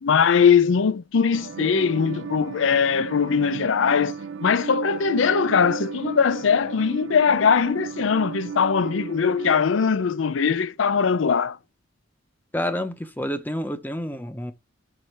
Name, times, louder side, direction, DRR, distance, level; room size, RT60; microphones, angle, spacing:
voice 1, 0.0-11.6, left 6 dB, 80° left, 0.5 m, -21 dB
sound 1, 1.3-9.6, right 6 dB, 70° right, 0.5 m, -35 dB
voice 2, 12.5-14.5, equal, 10° left, 0.7 m, -29 dB
4.9 x 4.0 x 5.8 m
head